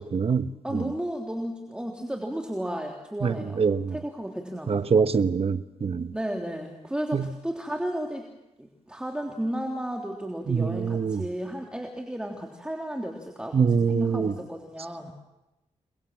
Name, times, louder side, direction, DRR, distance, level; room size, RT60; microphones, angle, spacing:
voice 1, 0.0-0.9 3.2-3.9 4.7-6.1 7.1-7.2 10.5-11.2 13.5-14.3, right 6 dB, 50° right, 12 dB, 1.2 m, -24 dB
voice 2, 0.6-3.6 3.9-4.8 6.1-8.3 8.6-15.1, equal, 5° right, 1 dB, 3.3 m, -33 dB
28.5 x 21.0 x 7.5 m, 0.96 s
cardioid pair, 70°, 12 cm